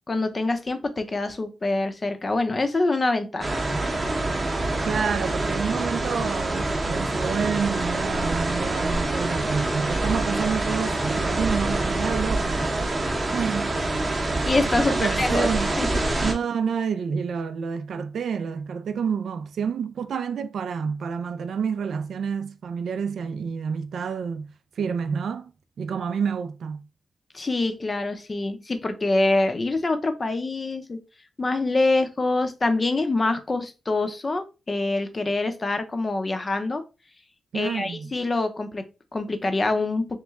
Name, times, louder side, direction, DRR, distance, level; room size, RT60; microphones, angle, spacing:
voice 1, 0.1-3.6 14.4-15.5 15.8-15.9 27.3-31.0 31.4-36.8 37.5-40.1, left 2 dB, 25° left, 0.6 m, -25 dB
sound 1, 3.4-16.3, right 2 dB, 25° right, 0.8 m, -26 dB
voice 2, 4.8-12.7 13.3-13.8 14.8-15.7 16.2-24.5 24.8-25.5 25.8-26.8 37.5-38.1, right 6 dB, 75° right, 0.4 m, -28 dB
3.6 x 3.1 x 3.5 m
wide cardioid pair, 155°, 0 cm